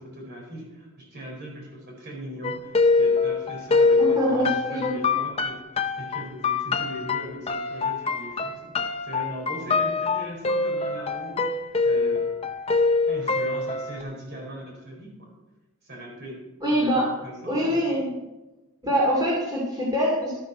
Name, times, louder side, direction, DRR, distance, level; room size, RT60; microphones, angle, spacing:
voice 1, 0.0-8.6 9.0-11.4 11.8-12.3 13.0-15.3 15.8-16.4 16.7-18.0, right 1 dB, 50° right, -2 dB, 4.4 m, -39 dB
sound 1, 2.4-14.0, left 4 dB, 25° left, 0.5 m, -24 dB
voice 2, 3.9-4.9 16.6-17.1 17.5-18.1 18.8-20.4, equal, 20° right, -5 dB, 2.5 m, -24 dB
12.5 x 9.2 x 4.5 m, 1.1 s
head